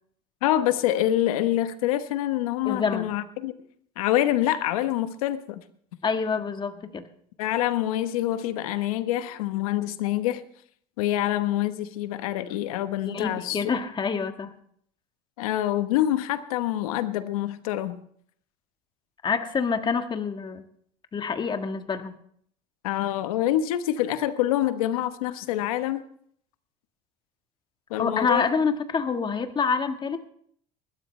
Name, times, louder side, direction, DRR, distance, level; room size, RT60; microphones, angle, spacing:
voice 1, 0.4-3.5 4.0-5.6 7.4-10.4 11.0-13.6 15.4-18.0 22.8-26.0 27.9-28.4, left 13 dB, 90° left, 1.1 m, -26 dB
voice 2, 2.6-3.1 6.0-7.1 13.0-14.5 19.2-20.6 21.1-22.1 28.0-30.2, left 5 dB, 25° left, 1.6 m, -27 dB
20.5 x 12.5 x 3.3 m
supercardioid pair, 110°, 18 cm